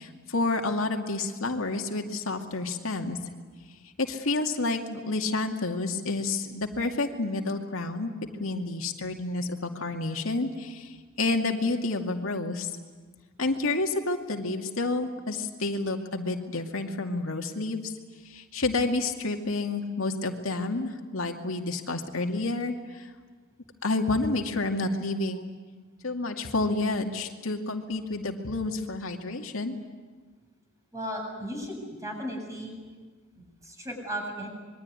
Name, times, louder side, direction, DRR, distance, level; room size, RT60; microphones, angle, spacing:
voice 1, 0.0-3.2 4.0-8.1 8.4-12.7 13.4-17.9 18.2-23.1 23.8-25.5 26.0-29.8, left 2 dB, 90° left, 3 dB, 2.4 m, -29 dB
voice 2, 30.9-32.8 33.3-34.5, equal, 15° right, 1 dB, 7.8 m, -36 dB
26.5 x 22.0 x 9.8 m, 1.4 s
head